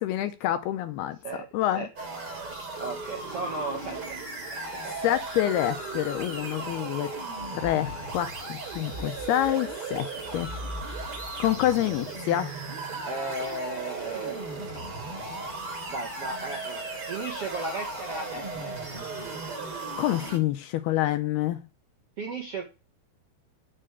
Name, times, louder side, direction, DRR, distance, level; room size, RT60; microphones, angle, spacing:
voice 1, 0.0-1.9 5.0-7.1 7.5-10.1 10.3-10.5 11.4-12.6 20.0-21.6, left 13 dB, 80° left, 2.5 m, -27 dB
sound 1, 2.0-20.4, right 2 dB, 35° right, 4.2 m, -36 dB
voice 2, 2.8-4.2 4.7-4.9 13.0-14.3 15.9-18.7 22.2-22.6, right 3 dB, 55° right, 1.7 m, -35 dB
7.8 x 7.6 x 8.2 m
omnidirectional pair, 5.0 m